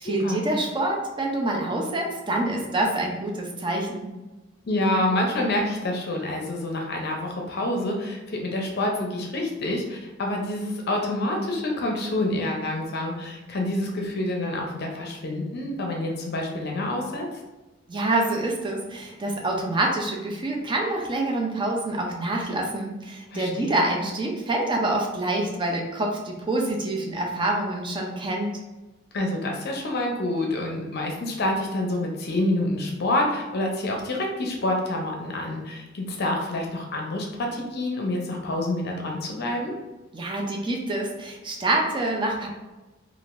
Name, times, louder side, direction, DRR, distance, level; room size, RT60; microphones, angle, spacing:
voice 1, 0.0-4.1 17.9-28.5 40.1-42.5, right 2 dB, 25° right, 0 dB, 0.5 m, -26 dB
voice 2, 4.6-17.3 23.3-23.8 29.1-39.7, left 1 dB, 55° left, 1 dB, 0.6 m, -27 dB
3.5 x 2.4 x 2.5 m, 1.1 s
head